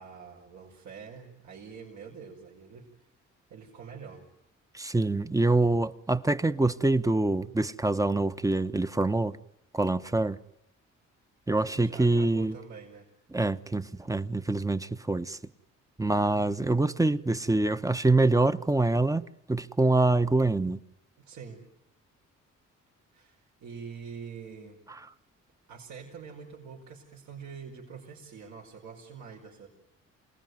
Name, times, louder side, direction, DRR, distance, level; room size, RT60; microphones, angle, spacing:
voice 1, 0.0-3.1 3.5-4.3 11.6-13.1 21.2-21.6 23.1-24.8 25.7-29.7, right 6 dB, 70° right, 5.2 m, -45 dB
voice 2, 4.7-9.4 9.7-10.4 11.5-12.5 13.3-15.4 16.0-20.8, right 2 dB, 10° right, 1.0 m, -25 dB
27.0 x 19.0 x 9.4 m
cardioid pair, 90°, 30 cm